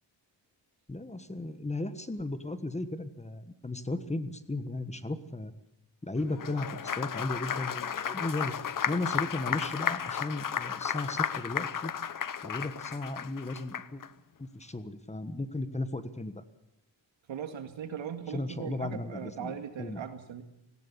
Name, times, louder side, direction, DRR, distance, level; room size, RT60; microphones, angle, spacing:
voice 1, 0.9-5.5 6.0-8.5 8.9-11.9 12.4-14.0 14.4-16.4 18.3-20.0, left 2 dB, 15° left, 11 dB, 1.3 m, -35 dB
Applause, 6.3-14.1, left 8 dB, 45° left, 1.0 m, -33 dB
voice 2, 17.3-20.4, right 8 dB, 75° right, 8 dB, 2.2 m, -39 dB
18.5 x 17.0 x 8.4 m, 0.86 s
cardioid pair, 90°, 45 cm